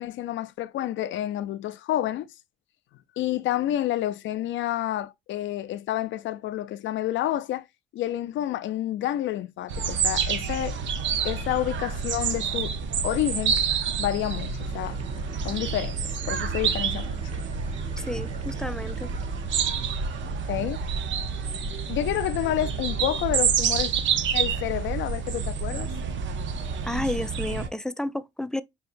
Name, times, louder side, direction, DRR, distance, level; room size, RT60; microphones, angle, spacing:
voice 1, 0.0-2.3 3.2-7.6 7.9-10.8 11.2-12.8 13.0-13.6 14.0-15.0 15.4-17.2 20.4-20.8 21.9-23.9 24.3-25.9, left 13 dB, 75° left, 0.4 m, -29 dB
sound 1, 9.7-27.7, right 6 dB, 70° right, 0.7 m, -28 dB
sound 2, 14.5-20.7, right 4 dB, 30° right, 1.0 m, -47 dB
voice 2, 18.0-19.1 26.8-28.6, left 1 dB, 5° left, 0.3 m, -31 dB
5.6 x 2.8 x 2.5 m
cardioid pair, 90°, 20 cm